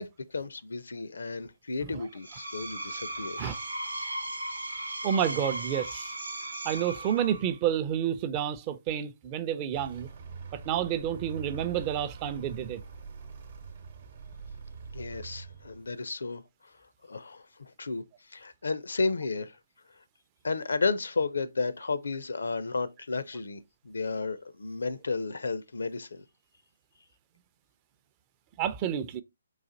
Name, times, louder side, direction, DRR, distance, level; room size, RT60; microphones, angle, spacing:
voice 1, 0.0-3.6 14.9-16.7 17.1-19.6 20.4-26.2, left 4 dB, 80° left, 0.5 m, -33 dB
Screech, 2.1-7.6, right 1 dB, 90° right, 0.9 m, -37 dB
voice 2, 5.0-6.1 6.6-10.1 10.5-12.8 28.6-29.2, right 10 dB, 30° right, 0.4 m, -30 dB
Vehicle, 9.7-16.1, right 5 dB, 55° right, 0.9 m, -44 dB
4.0 x 2.5 x 3.8 m
hypercardioid pair, 145°, 0 cm